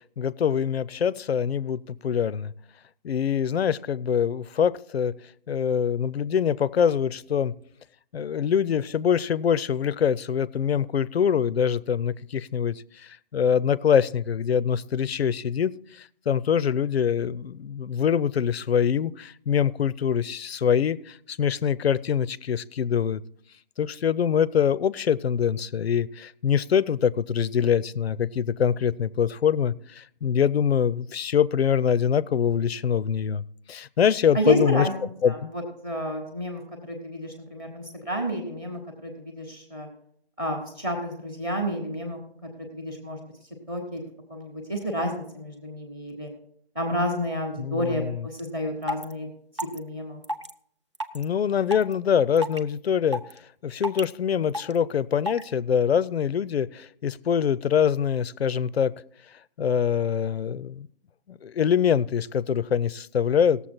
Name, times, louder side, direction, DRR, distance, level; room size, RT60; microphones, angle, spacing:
voice 1, 0.2-2.5 3.0-5.1 5.5-7.5 8.1-23.2 23.8-33.4 33.7-34.9 35.2-35.5 47.6-48.2 51.1-53.2 53.6-58.9 59.6-60.9 61.3-63.6, left 8 dB, 70° left, 20 dB, 0.5 m, -24 dB
voice 2, 34.3-34.9 35.3-39.9 40.4-42.2 42.7-43.2 43.7-44.0 44.3-46.3 46.7-49.3 49.7-50.2, equal, 10° right, 3 dB, 0.9 m, -30 dB
sound 1, 48.4-48.5 48.8-49.1 49.6-49.8 50.2-50.5 50.9-51.2 51.7-51.9 52.4-52.6 53.1-53.4 53.8-54.0 54.5-54.8 55.3-55.4, equal, 30° right, 0.4 m, -30 dB
18.0 x 7.1 x 4.4 m, 0.66 s
figure-of-eight pair, 165°, 32 cm